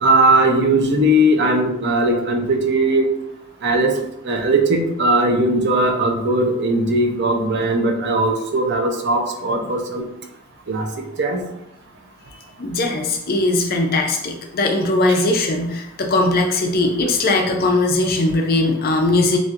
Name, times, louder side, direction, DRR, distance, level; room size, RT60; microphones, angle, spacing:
voice 1, 0.0-3.1 3.6-3.9 4.2-10.0 10.7-10.9 11.2-11.4 15.1-15.2, right 1 dB, 55° right, 3 dB, 0.7 m, -18 dB
voice 2, 12.6-19.4, left 2 dB, 45° left, 2 dB, 0.6 m, -19 dB
7.2 x 2.6 x 2.5 m, 0.85 s
head